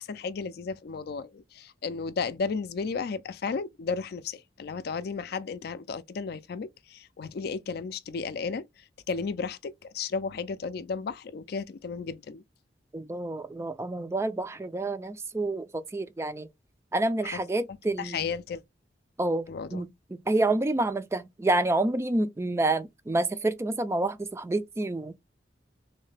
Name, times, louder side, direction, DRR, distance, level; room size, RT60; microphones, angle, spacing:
voice 1, 0.0-8.6 9.1-12.4 17.2-17.4 18.0-18.6 19.5-19.8, left 5 dB, 60° left, 0.4 m, -34 dB
voice 2, 12.9-16.5 16.9-18.3 19.2-19.4 19.7-25.2, right 2 dB, 15° right, 0.3 m, -28 dB
3.2 x 2.8 x 3.2 m
head